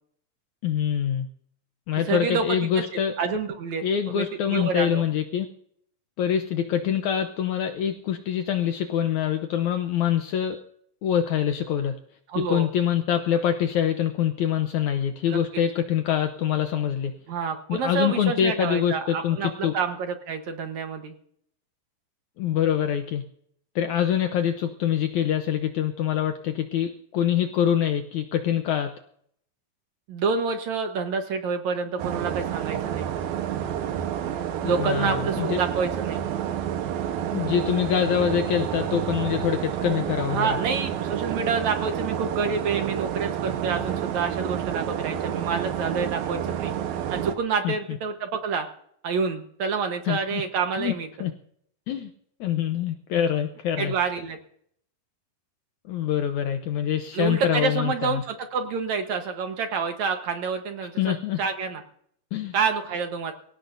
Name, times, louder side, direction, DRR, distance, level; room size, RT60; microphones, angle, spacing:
voice 1, 0.6-1.3 1.9-3.1 3.8-5.5 6.2-10.6 11.0-12.0 12.4-17.1 17.7-19.7 22.4-23.2 23.8-28.9 34.6-35.6 37.3-40.6 47.6-47.7 50.1-50.4 50.8-50.9 51.2-51.3 51.9-52.1 52.4-53.9 55.9-58.2 61.0-61.4 62.3-62.5, left 9 dB, 75° left, 7 dB, 1.8 m, -25 dB
voice 2, 2.1-2.8 3.2-3.8 4.1-4.2 4.5-5.0 12.3-12.7 15.3-15.6 17.3-21.1 30.1-33.1 34.6-36.2 40.3-46.7 47.1-48.7 49.0-51.1 53.8-54.4 57.1-61.8 62.5-63.3, right 5 dB, 60° right, 5 dB, 2.2 m, -28 dB
sound 1, 32.0-47.4, right 10 dB, 85° right, 2.9 m, -29 dB
24.0 x 16.5 x 2.6 m, 0.67 s
omnidirectional pair, 4.1 m